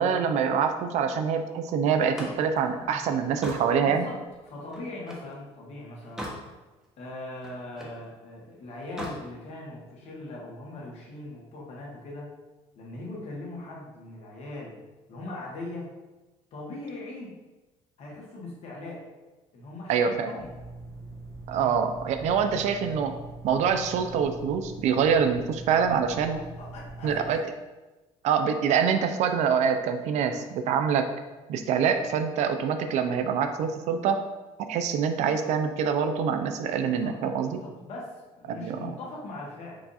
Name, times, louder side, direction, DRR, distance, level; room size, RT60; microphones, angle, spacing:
voice 1, 0.0-4.1 19.9-20.3 21.5-23.1 23.4-26.4 27.0-27.4 28.2-31.1 31.5-34.2 34.6-37.6 38.5-38.9, right 7 dB, 65° right, 8 dB, 0.4 m, -25 dB
Slam, 1.9-5.3 5.8-6.5 6.9-8.0 8.8-9.2, equal, 5° right, 0.9 m, -40 dB
voice 2, 3.8-6.2 7.0-12.3 12.7-14.8 15.1-15.9 16.5-17.4 18.0-19.0 19.5-20.5 21.5-21.8 26.2-27.3 36.8-39.8, left 2 dB, 60° left, -3 dB, 1.4 m, -40 dB
sound 1, 20.4-27.3, right 2 dB, 25° left, 0.7 m, -43 dB
4.6 x 2.5 x 4.1 m, 1.1 s
cardioid pair, 115°, 13 cm